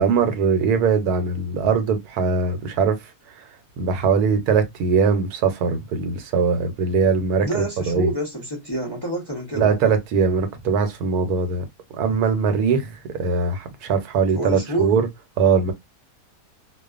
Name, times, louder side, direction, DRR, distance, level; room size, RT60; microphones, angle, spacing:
voice 1, 0.0-3.0 3.4-3.5 3.8-8.1 9.5-11.6 12.0-15.1 15.4-15.7, right 5 dB, 85° right, 1.2 m, -21 dB
voice 2, 7.4-9.7 14.4-15.0, right 1 dB, 25° left, 0.5 m, -27 dB
2.4 x 2.3 x 2.3 m
omnidirectional pair, 1.6 m